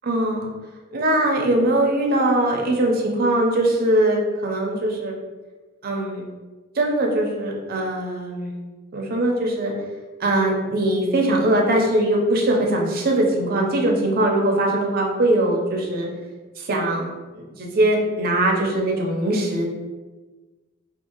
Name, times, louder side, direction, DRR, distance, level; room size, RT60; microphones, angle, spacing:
voice 1, 0.0-0.5 0.9-5.1 5.8-6.2 6.8-8.5 8.9-9.7 10.2-16.1 16.6-19.8, right 1 dB, 45° right, 0 dB, 0.5 m, -21 dB
2.6 x 2.4 x 2.8 m, 1.3 s
head